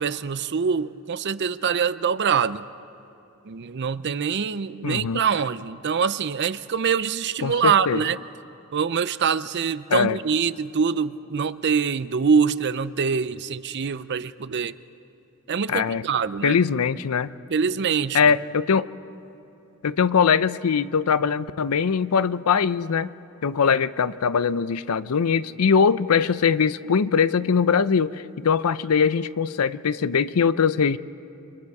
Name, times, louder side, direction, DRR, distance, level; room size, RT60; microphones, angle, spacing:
voice 1, 0.0-2.7 3.5-8.2 8.7-14.7 15.5-16.6 17.5-18.2, right 6 dB, 55° right, 15 dB, 0.5 m, -24 dB
voice 2, 4.8-5.2 7.4-8.0 9.9-10.2 15.7-16.1 16.4-17.3 18.1-18.9 19.8-23.1 23.4-31.0, left 6 dB, 90° left, 16 dB, 0.5 m, -21 dB
29.5 x 24.5 x 4.8 m, 2.9 s
head